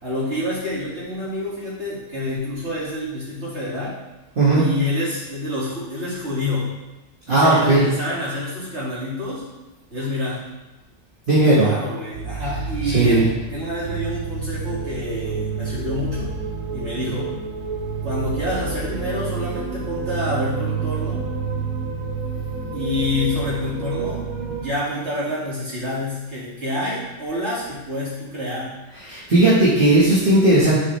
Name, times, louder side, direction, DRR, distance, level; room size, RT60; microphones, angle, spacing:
voice 1, 0.0-4.0 4.5-6.7 7.3-9.4 9.9-10.4 11.5-16.3 16.7-17.4 18.0-21.2 22.7-28.7, left 1 dB, 60° right, -8 dB, 2.6 m, -27 dB
voice 2, 7.3-7.9 11.3-11.7 12.8-13.3 29.1-30.8, right 2 dB, 45° right, -9 dB, 1.5 m, -16 dB
sound 1, 12.1-24.7, right 5 dB, 75° right, 1.2 m, -29 dB
7.6 x 4.8 x 3.2 m, 1.1 s
omnidirectional pair, 1.3 m